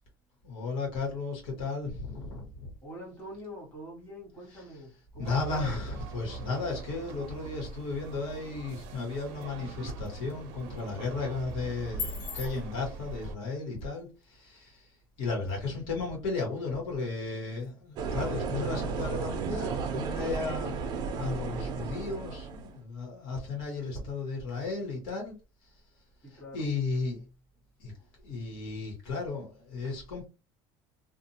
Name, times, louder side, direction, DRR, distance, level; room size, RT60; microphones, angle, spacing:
voice 1, 0.4-2.7 4.5-4.6 5.2-14.9 15.2-25.3 26.3-27.2 27.8-27.9 28.2-30.3, left 3 dB, 90° left, 1.4 m, -34 dB
voice 2, 2.8-5.8 26.2-26.7, equal, 20° left, 1.3 m, -44 dB
sound 1, 5.2-13.4, right 4 dB, 90° right, 0.5 m, -43 dB
sound 2, 8.5-22.5, left 6 dB, 40° left, 0.7 m, -49 dB
sound 3, 18.0-22.8, right 5 dB, 40° right, 0.5 m, -33 dB
2.6 x 2.4 x 2.7 m
cardioid pair, 175°, 10 cm